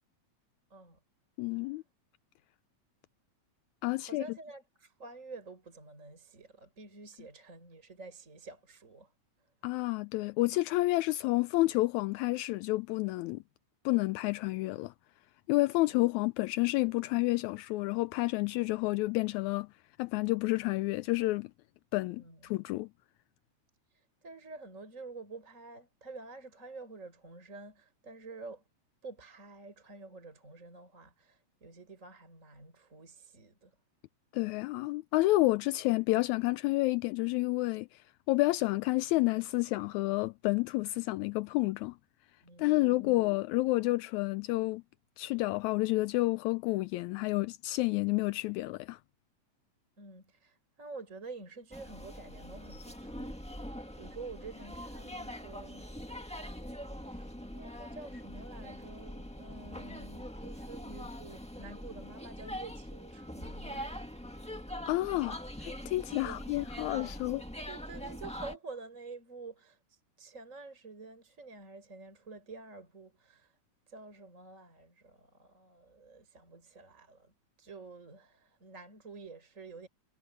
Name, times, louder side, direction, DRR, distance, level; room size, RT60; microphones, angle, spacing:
voice 1, 1.4-1.8 3.8-4.2 9.6-13.4 13.9-14.9 15.5-19.7 20.0-21.5 21.9-22.9 34.3-42.0 42.6-44.8 45.2-49.0 64.9-67.4, left 20 dB, 85° left, 1.9 m, -30 dB
voice 2, 4.0-9.1 15.8-16.0 22.2-22.6 23.9-28.6 29.0-33.8 42.4-43.2 50.0-53.6 53.9-55.9 56.9-63.9 66.2-67.2 67.7-73.6 73.9-79.9, right 3 dB, 25° right, 5.3 m, -49 dB
sound 1, 51.7-68.6, equal, 5° left, 1.0 m, -43 dB
omnidirectional pair, 3.3 m